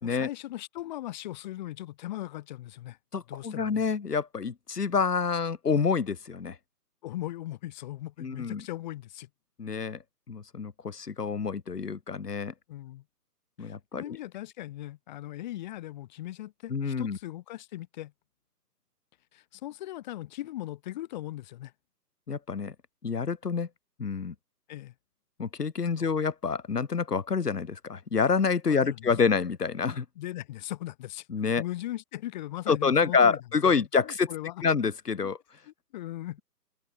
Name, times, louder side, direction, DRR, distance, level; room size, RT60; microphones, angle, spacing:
voice 1, 0.0-3.0 3.3-3.8 7.0-9.3 12.7-13.0 13.6-18.1 19.3-21.7 24.7-24.9 26.0-26.1 28.7-29.1 30.2-33.4 33.7-34.6 35.1-35.3 35.7-36.4, left 14 dB, 25° left, 4.8 m, -39 dB
voice 2, 3.1-6.6 8.2-8.6 9.6-10.0 10.3-12.5 13.6-14.2 16.7-17.2 22.3-22.7 23.0-23.7 24.0-24.3 25.4-30.1 31.3-31.6 32.7-34.3 34.6-35.4, left 5 dB, 70° left, 3.6 m, -27 dB
hypercardioid pair, 155°, 48 cm